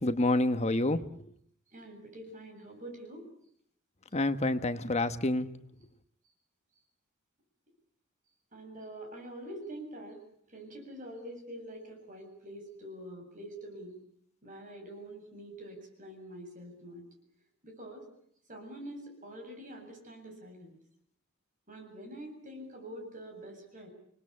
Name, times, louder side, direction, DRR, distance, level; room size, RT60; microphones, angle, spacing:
voice 1, 0.0-1.0 4.1-5.5, left 2 dB, 30° left, 10 dB, 1.2 m, -28 dB
voice 2, 1.7-3.3 8.5-10.2 10.5-14.0 14.4-17.1 17.6-18.1 18.5-20.8 21.7-23.9, right 1 dB, 40° right, 4 dB, 7.9 m, -45 dB
29.5 x 20.0 x 8.5 m, 0.67 s
head